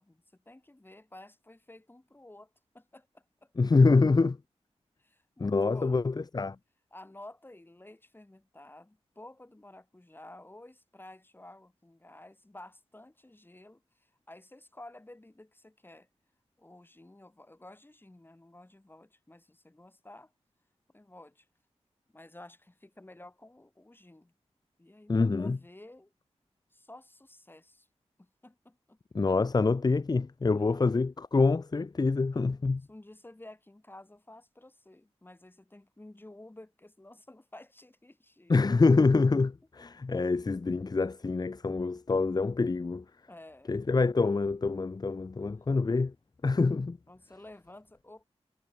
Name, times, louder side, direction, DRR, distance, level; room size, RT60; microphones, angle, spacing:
voice 1, 0.0-3.5 5.0-6.0 6.9-16.1 16.6-20.3 20.9-21.5 22.1-24.3 24.8-26.1 26.7-27.9 28.2-29.0 30.5-30.9 32.9-38.6 40.1-40.2 43.3-43.7 45.6-45.7 47.1-48.2, left 1 dB, 20° left, 6.2 m, -52 dB
voice 2, 3.6-4.4 5.4-6.6 25.1-25.6 29.1-32.8 38.5-43.0 43.7-46.1 46.4-47.0, left 3 dB, 35° left, 0.9 m, -26 dB
wide cardioid pair, 100°, 11 cm